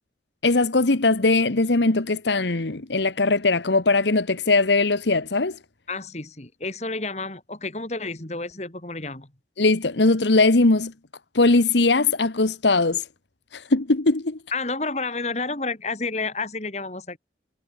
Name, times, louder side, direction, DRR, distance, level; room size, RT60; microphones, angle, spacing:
voice 1, 0.4-5.6 9.6-10.9 11.3-13.0 13.5-14.4, left 3 dB, 80° left, 1.3 m, -20 dB
voice 2, 5.9-9.3 14.5-17.2, left 3 dB, 40° left, 2.8 m, -30 dB
head